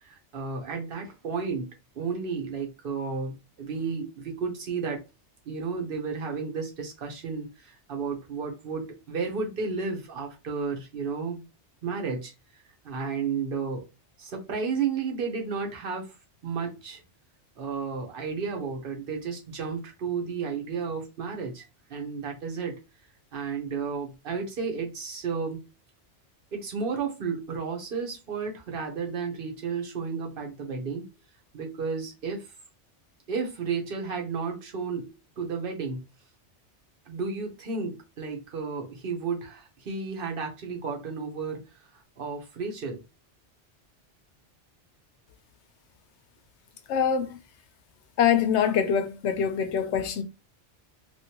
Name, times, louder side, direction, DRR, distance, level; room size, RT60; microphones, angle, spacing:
voice 1, 0.0-1.7 1.9-5.0 5.4-11.4 11.8-12.3 12.8-13.8 14.2-16.2 16.4-17.0 17.6-21.6 21.9-22.8 23.3-25.6 26.5-31.1 31.5-32.5 33.3-36.0 37.1-43.0, right 5 dB, 50° right, 1.0 m, -32 dB
voice 2, 46.9-47.4 48.2-50.2, left 7 dB, 75° left, 0.9 m, -24 dB
3.1 x 2.6 x 2.8 m
omnidirectional pair, 1.2 m